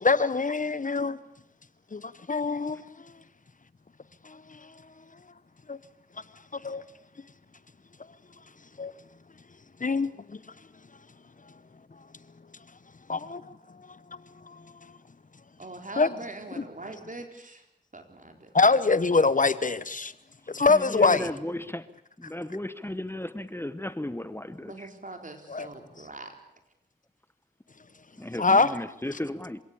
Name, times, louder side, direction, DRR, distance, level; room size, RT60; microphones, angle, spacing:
voice 1, 0.0-1.2 1.9-2.8 4.2-4.6 5.7-5.8 6.5-6.8 8.8-8.9 9.8-10.4 13.1-13.4 14.5-14.6 16.0-16.1 18.5-20.1 20.5-21.3 25.5-25.7 28.4-28.7, left 4 dB, 50° left, 1.0 m, -24 dB
voice 2, 15.6-17.6 17.9-18.5 21.4-21.6 24.6-26.3, right 2 dB, 50° right, 4.2 m, -42 dB
voice 3, 20.6-21.9 22.2-24.9 28.2-29.6, left 1 dB, 15° left, 1.0 m, -35 dB
26.5 x 17.0 x 8.7 m
cardioid pair, 45°, 17 cm